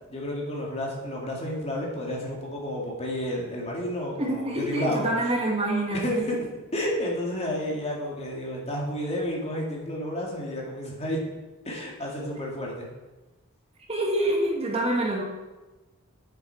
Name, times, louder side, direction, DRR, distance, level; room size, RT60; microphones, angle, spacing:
voice 1, 0.1-5.3 5.9-11.2 11.6-12.9, equal, 30° left, -2 dB, 2.1 m, -31 dB
voice 2, 4.2-6.3 13.9-15.2, right 1 dB, 30° right, -1 dB, 1.4 m, -26 dB
9.1 x 6.6 x 4.6 m, 1.1 s
head